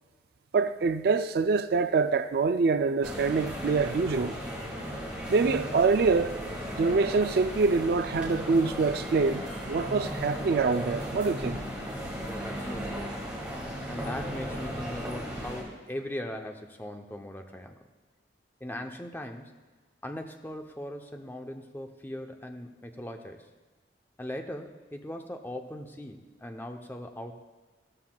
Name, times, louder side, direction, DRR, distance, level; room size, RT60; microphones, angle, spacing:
voice 1, 0.5-4.3 5.3-6.3 6.8-11.6, right 4 dB, 55° right, 0.4 m, -25 dB
sound 1, 3.0-15.6, equal, 5° right, 2.3 m, -36 dB
voice 2, 12.3-13.2 13.9-17.8 18.6-19.5 20.0-23.5 24.2-27.3, left 1 dB, 10° left, 0.6 m, -39 dB
15.0 x 13.0 x 2.3 m
head